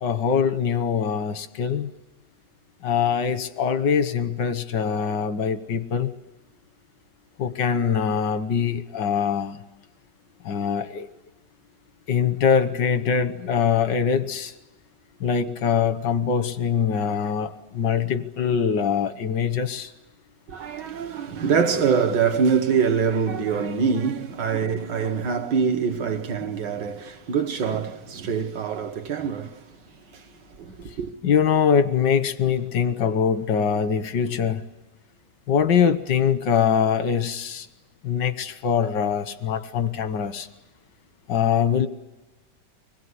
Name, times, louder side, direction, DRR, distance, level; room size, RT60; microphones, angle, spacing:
voice 1, 0.0-1.9 2.8-6.1 7.4-9.6 10.4-11.1 12.1-14.5 15.2-19.9 31.2-34.6 35.5-37.7 38.0-40.5 41.3-41.9, left 7 dB, 90° left, 1.7 m, -23 dB
voice 2, 20.5-29.6 30.1-30.2 30.6-31.1, right 6 dB, 80° right, 2.0 m, -24 dB
25.0 x 21.0 x 9.7 m
omnidirectional pair, 1.9 m